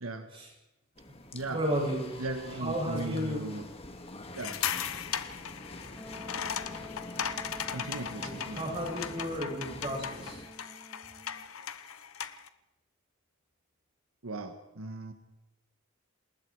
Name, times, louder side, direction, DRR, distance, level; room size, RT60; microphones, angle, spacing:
sound 1, 0.9-10.5, left 2 dB, 30° left, 2.0 m, -46 dB
voice 1, 1.5-2.1 2.6-3.4 8.2-10.4, equal, 25° right, -1 dB, 7.7 m, -33 dB
voice 2, 2.2-3.6 4.4-4.6 7.7-8.6 14.2-15.1, right 2 dB, 90° right, 7 dB, 1.5 m, -37 dB
sound 2, 4.3-12.5, left 8 dB, 80° left, 1.0 m, -38 dB
Wind instrument woodwind instrument, 6.0-11.5, left 1 dB, ahead, 2.5 m, -48 dB
28.5 x 19.5 x 4.8 m, 0.96 s
head